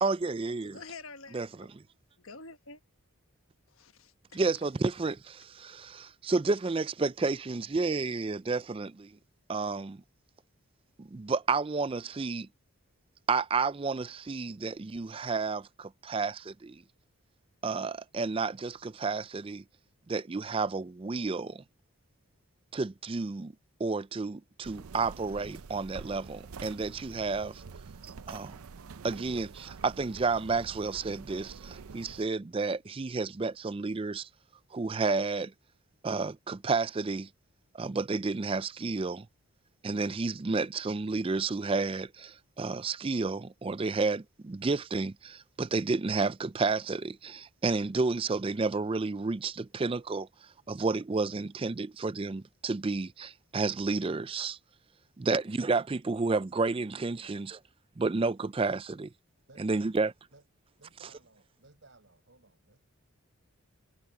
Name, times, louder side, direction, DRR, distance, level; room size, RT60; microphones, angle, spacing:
voice 1, 0.0-0.8 1.3-1.7 4.3-9.2 9.5-10.0 11.0-12.5 13.3-16.8 17.6-19.6 20.1-21.6 22.7-23.5 23.8-27.5 28.3-28.5 29.0-34.3 34.7-35.5 36.0-37.3 37.7-39.3 39.8-54.6 55.2-57.6 58.0-59.1 59.6-60.1, right 4 dB, 25° right, 0.3 m, -31 dB
voice 2, 0.6-1.4 2.2-2.8 3.7-4.4, left 4 dB, 70° left, 1.2 m, -47 dB
sound 1, 24.6-32.3, right 5 dB, 80° right, 0.6 m, -47 dB
voice 3, 27.6-27.9 55.3-55.5 57.2-57.4 59.5-60.4 60.8-62.8, right 2 dB, 55° right, 6.6 m, -59 dB
head